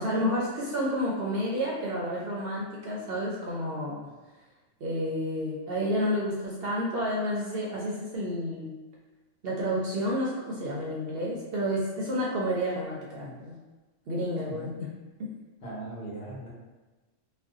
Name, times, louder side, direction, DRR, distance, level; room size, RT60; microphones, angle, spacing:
voice 1, 0.0-4.1 4.8-8.7 9.4-13.5 14.1-14.9, equal, 60° right, -4 dB, 0.7 m, -30 dB
voice 2, 15.6-16.5, right 2 dB, 55° left, -7 dB, 1.1 m, -39 dB
2.5 x 2.2 x 3.6 m, 1.2 s
omnidirectional pair, 1.3 m